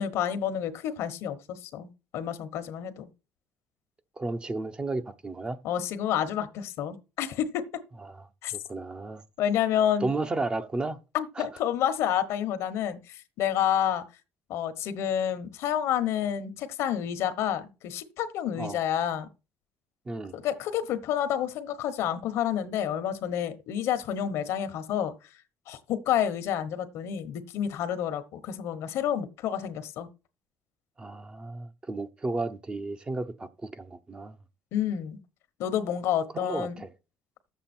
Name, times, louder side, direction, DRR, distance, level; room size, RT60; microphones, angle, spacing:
voice 1, 0.0-3.1 5.6-7.6 8.4-8.5 9.4-10.1 11.1-14.0 14.5-19.3 20.3-25.1 25.7-30.1 34.7-35.2 35.6-36.8, left 10 dB, 75° left, 1.1 m, -29 dB
voice 2, 4.2-5.6 8.0-8.2 8.5-9.2 10.0-11.0 11.4-11.5 18.6-18.8 20.1-20.3 31.0-34.4 36.3-36.9, right 3 dB, 20° right, 0.7 m, -33 dB
10.0 x 7.4 x 4.4 m
cardioid pair, 135°, 5 cm